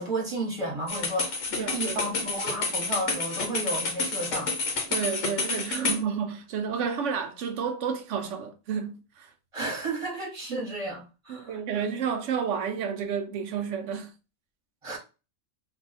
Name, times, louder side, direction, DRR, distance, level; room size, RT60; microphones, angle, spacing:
voice 1, 0.0-4.5 9.5-11.6 14.8-15.0, right 1 dB, 25° right, 1.2 m, -32 dB
sound 1, 0.9-6.0, left 3 dB, 75° left, 1.2 m, -29 dB
voice 2, 1.6-2.0 4.9-9.3 10.5-10.7 11.3-14.1, right 7 dB, 70° right, 0.8 m, -31 dB
2.7 x 2.3 x 3.9 m
omnidirectional pair, 1.4 m